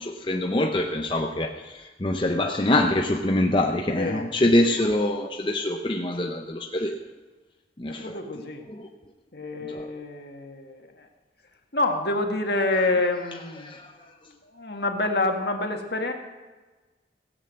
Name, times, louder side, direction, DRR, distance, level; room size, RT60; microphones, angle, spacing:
voice 1, 0.0-7.0 7.8-8.2 8.7-8.9 9.6-9.9 13.6-13.9, left 1 dB, 25° left, 2 dB, 0.8 m, -25 dB
voice 2, 3.9-4.3 7.9-8.7 9.3-11.1 11.7-13.8 14.4-16.1, left 2 dB, 60° left, 3 dB, 1.7 m, -27 dB
16.5 x 8.2 x 7.7 m, 1.3 s
head